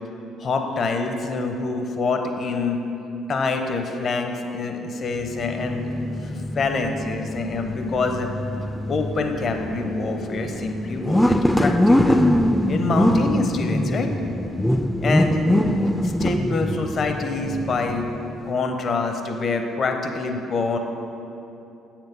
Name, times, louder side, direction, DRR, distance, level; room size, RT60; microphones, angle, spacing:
voice 1, 0.4-2.8 3.3-5.9 6.2-8.3 8.9-12.3 12.7-14.1 15.0-15.4 16.0-18.1 18.4-20.8, left 3 dB, 50° left, 5 dB, 0.7 m, -26 dB
sound 1, 5.2-18.5, left 1 dB, 5° left, 0.3 m, -23 dB
7.5 x 4.5 x 5.3 m, 2.9 s
hypercardioid pair, 55°, 0 cm